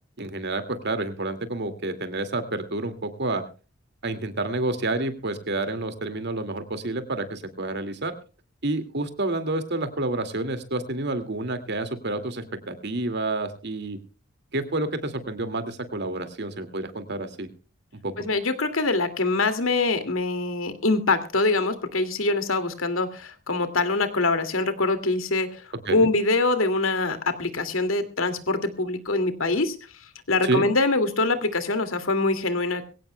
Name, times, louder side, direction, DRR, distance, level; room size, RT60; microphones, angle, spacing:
voice 1, 0.2-3.4 4.0-8.1 8.6-14.0 14.5-17.5 17.9-18.1 25.9-26.1 30.4-30.7, right 2 dB, 60° right, 9 dB, 2.2 m, -29 dB
voice 2, 18.2-25.6 25.9-29.8 30.3-32.9, left 3 dB, 85° left, 9 dB, 2.3 m, -24 dB
22.5 x 17.0 x 2.2 m, 0.34 s
head